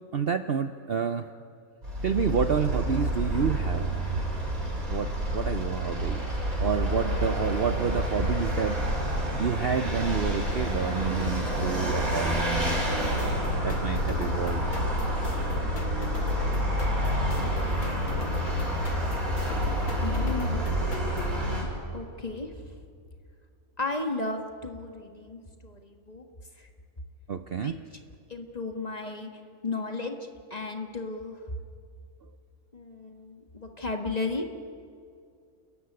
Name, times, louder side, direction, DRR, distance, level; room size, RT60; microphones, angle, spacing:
voice 1, 0.0-1.3 2.0-3.9 4.9-8.8 9.4-12.6 13.6-14.7 27.3-27.8, right 7 dB, 50° right, 9 dB, 0.8 m, -29 dB
Vehicle, 1.8-21.6, equal, 70° right, 6.5 m, -28 dB
sound 1, 13.2-21.4, left 1 dB, 80° left, 2.9 m, -37 dB
voice 2, 20.0-20.8 21.9-22.8 23.8-26.3 26.6-26.7 27.6-27.7 28.3-29.3 29.6-30.2 30.5-31.4 32.7-34.5, left 3 dB, 25° left, 4 dB, 1.8 m, -34 dB
29.5 x 14.5 x 9.7 m, 2.3 s
omnidirectional pair, 1.5 m